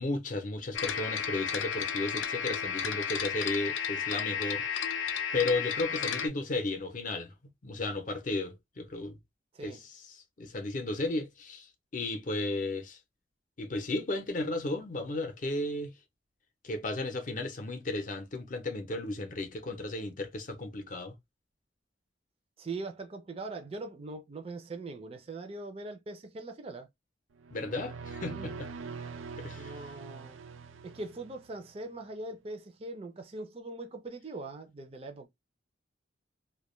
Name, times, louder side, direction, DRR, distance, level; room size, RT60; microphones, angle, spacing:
voice 1, 0.0-4.7 5.3-7.3 7.6-9.2 9.6-9.8 10.1-13.0 13.6-15.9 16.6-21.1 27.5-28.7 29.4-29.7, left 2 dB, 45° left, 0.6 m, -34 dB
sound 1, 0.7-6.3, left 7 dB, 85° left, 0.4 m, -33 dB
voice 2, 9.5-9.8 22.6-26.9 28.3-28.5 29.6-30.4 30.8-35.3, right 2 dB, 30° right, 0.4 m, -41 dB
sound 2, 27.4-31.7, right 5 dB, 90° right, 0.4 m, -43 dB
2.2 x 2.2 x 3.0 m
head